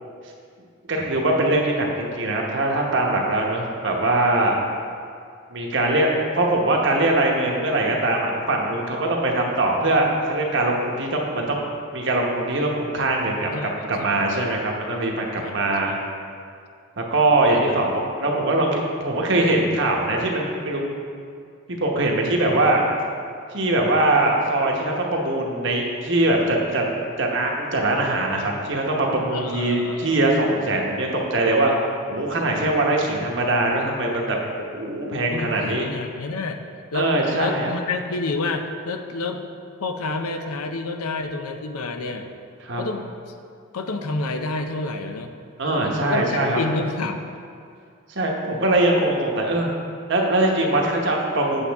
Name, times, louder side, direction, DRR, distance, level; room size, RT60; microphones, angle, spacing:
voice 1, 0.9-4.7 5.5-6.1 6.3-11.6 11.9-16.0 17.0-20.8 21.8-22.8 23.5-26.9 27.2-31.7 32.1-34.4 34.7-35.9 36.9-37.7 42.6-42.8 45.6-46.6 48.1-49.7 50.1-51.7, right 2 dB, 55° right, 0 dB, 1.0 m, -22 dB
voice 2, 13.5-14.5 15.4-16.0 29.3-30.2 35.0-36.6 36.9-37.1 37.4-39.5 39.8-42.3 42.8-43.1 43.7-45.3 46.1-47.2, left 3 dB, 85° left, 6 dB, 0.6 m, -29 dB
8.3 x 7.0 x 3.5 m, 2.3 s
head